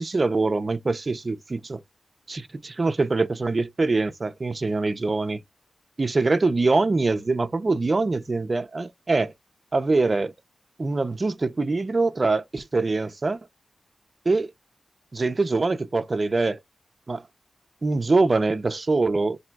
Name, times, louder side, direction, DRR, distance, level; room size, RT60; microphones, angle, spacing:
voice 1, 0.0-1.8 2.3-5.4 6.0-9.3 9.7-10.3 10.8-13.4 14.3-14.5 15.1-16.6 17.1-17.2 17.8-19.4, right 3 dB, 35° right, 0.4 m, -24 dB
2.6 x 2.2 x 3.9 m
wide cardioid pair, 150°, 0 cm